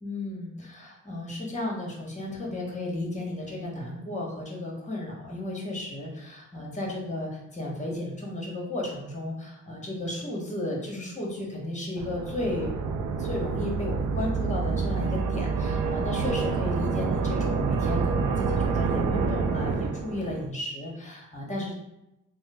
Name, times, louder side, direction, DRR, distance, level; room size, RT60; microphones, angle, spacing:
voice 1, 0.0-21.7, left 1 dB, 20° left, -1 dB, 1.2 m, -34 dB
sound 1, 12.0-20.5, right 5 dB, 70° right, 0.5 m, -28 dB
3.1 x 2.1 x 3.4 m, 0.88 s
supercardioid pair, 50°, 32 cm